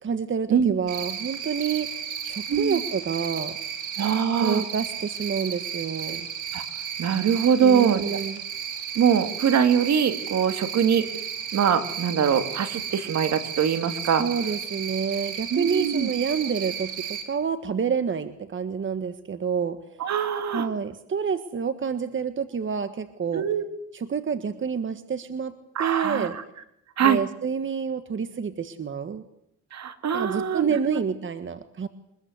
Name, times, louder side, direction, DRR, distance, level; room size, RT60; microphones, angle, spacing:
voice 1, 0.0-3.6 4.4-6.3 7.6-8.4 14.2-19.8 20.5-23.4 23.9-25.5 25.8-26.4 27.0-29.2 30.1-31.9, right 6 dB, 40° right, 11 dB, 1.6 m, -28 dB
Cricket, 0.9-17.2, right 8 dB, 80° right, 4.5 m, -34 dB
voice 2, 2.5-2.8 4.0-4.6 6.5-6.6 7.0-8.2 9.0-11.1 11.5-14.2 15.5-16.1 20.0-20.7 23.3-23.6 25.8-26.3 27.0-27.2 29.7-31.0, right 7 dB, 60° right, 10 dB, 2.6 m, -23 dB
24.5 x 21.5 x 8.1 m, 0.78 s
cardioid pair, 90°, 30 cm